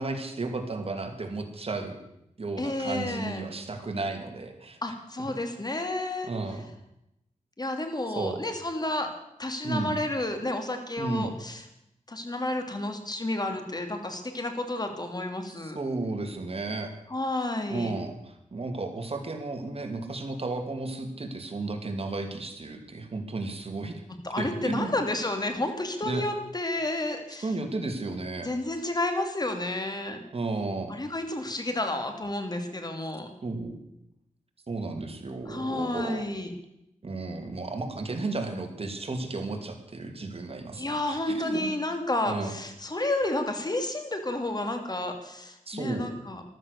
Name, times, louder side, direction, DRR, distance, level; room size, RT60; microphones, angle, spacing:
voice 1, 0.0-2.0 2.4-4.9 5.3-5.4 6.3-6.6 8.1-8.4 9.6-10.0 11.0-11.3 15.6-16.9 17.7-24.0 24.4-25.0 26.0-26.2 27.4-28.5 30.3-30.9 33.4-33.8 34.7-36.3 37.0-41.7 42.3-42.5 45.7-46.1, right 3 dB, 45° right, 4 dB, 2.8 m, -33 dB
voice 2, 2.6-3.4 4.8-6.6 7.6-9.1 9.4-11.6 12.1-15.8 17.1-17.9 24.2-27.5 28.4-30.2 30.9-33.3 35.4-36.5 40.8-46.4, left 1 dB, 30° left, 5 dB, 3.1 m, -31 dB
14.0 x 13.0 x 6.8 m, 0.84 s
cardioid pair, 65°, 13 cm